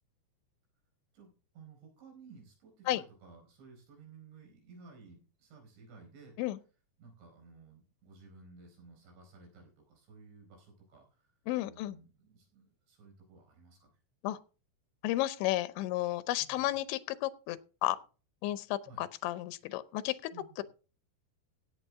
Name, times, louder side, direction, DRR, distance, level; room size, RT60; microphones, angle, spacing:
voice 1, 1.1-6.4 7.0-11.3 11.6-13.9 16.4-16.7 18.8-19.0 20.3-20.6, right 4 dB, 75° right, 6.6 m, -56 dB
voice 2, 11.5-12.0 14.2-14.4 15.0-17.6 17.8-18.0 18.4-20.2, left 15 dB, 85° left, 3.1 m, -32 dB
16.5 x 8.3 x 3.5 m
omnidirectional pair, 5.1 m